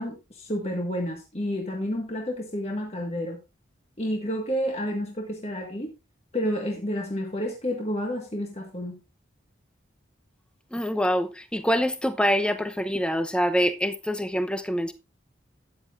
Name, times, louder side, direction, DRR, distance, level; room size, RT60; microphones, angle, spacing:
voice 1, 0.0-3.4 4.0-5.9 6.3-9.0, equal, 30° left, 1.6 m, -30 dB
voice 2, 10.7-14.9, equal, 5° left, 0.8 m, -25 dB
13.5 x 9.5 x 2.5 m
head